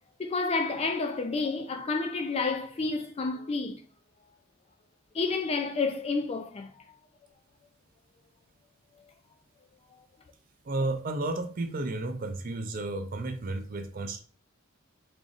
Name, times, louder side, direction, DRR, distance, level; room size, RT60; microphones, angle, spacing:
voice 1, 0.2-3.8 5.1-6.7, left 4 dB, 30° left, 0.3 m, -30 dB
voice 2, 10.6-14.2, right 2 dB, 40° right, 0.4 m, -32 dB
3.8 x 3.3 x 2.4 m
head